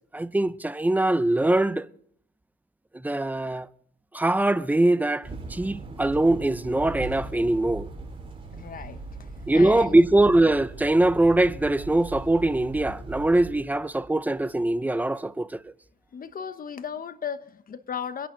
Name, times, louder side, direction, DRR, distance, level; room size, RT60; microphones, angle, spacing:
voice 1, 0.1-1.9 2.9-3.7 4.1-7.9 9.5-15.6, right 2 dB, 10° right, 0.6 m, -22 dB
sound 1, 5.2-13.5, right 3 dB, 30° right, 3.5 m, -39 dB
voice 2, 8.5-10.0 16.1-18.3, left 7 dB, 45° left, 1.1 m, -36 dB
24.0 x 11.0 x 3.9 m
cardioid pair, 90°, 20 cm